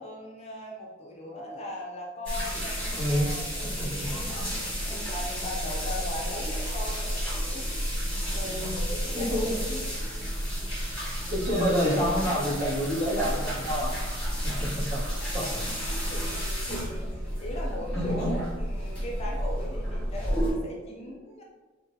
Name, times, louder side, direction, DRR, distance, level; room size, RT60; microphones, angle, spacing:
voice 1, 0.0-7.7 8.3-9.6 10.1-10.2 14.3-14.4 14.8-14.9 15.4-15.8 16.1-21.4, left 1 dB, 30° left, -2 dB, 0.5 m, -39 dB
sound 1, 2.3-20.5, equal, 5° left, 1.1 m, -31 dB
voice 2, 2.9-3.3 3.8-4.1 9.1-9.8 11.3-13.9 14.4-15.4, equal, 45° right, -7 dB, 1.1 m, -28 dB
3.5 x 2.2 x 2.7 m, 1.3 s
head